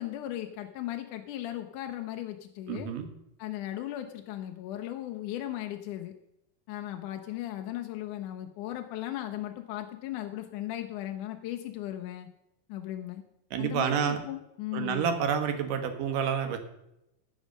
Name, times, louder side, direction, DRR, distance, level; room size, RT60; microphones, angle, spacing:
voice 1, 0.0-2.9 3.4-6.1 6.7-12.3 12.7-13.2 13.6-15.0, left 13 dB, 75° left, 6 dB, 2.1 m, -37 dB
voice 2, 2.7-3.1 13.5-14.2 14.7-16.6, right 7 dB, 75° right, 7 dB, 2.8 m, -29 dB
14.5 x 6.3 x 6.5 m, 0.84 s
omnidirectional pair, 3.9 m